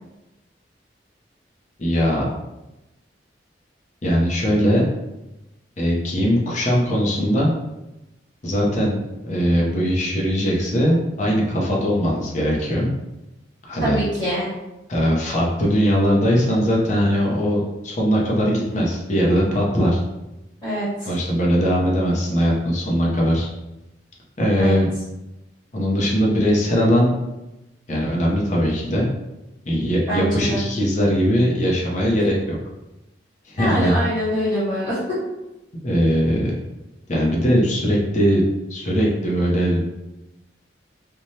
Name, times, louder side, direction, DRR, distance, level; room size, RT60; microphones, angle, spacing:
voice 1, 1.8-2.2 4.0-4.9 5.8-7.5 8.4-12.9 13.6-14.0 14.9-20.0 21.1-23.5 24.4-24.9 25.7-27.1 27.9-29.0 29.7-32.6 33.5-33.9 35.8-36.5 37.1-38.4 38.7-39.8, equal, 40° left, -3 dB, 0.6 m, -20 dB
voice 2, 13.8-14.5 20.6-21.1 24.5-24.8 30.1-30.6 33.6-35.0, equal, 20° left, -12 dB, 1.2 m, -24 dB
3.1 x 2.2 x 2.7 m, 0.97 s
head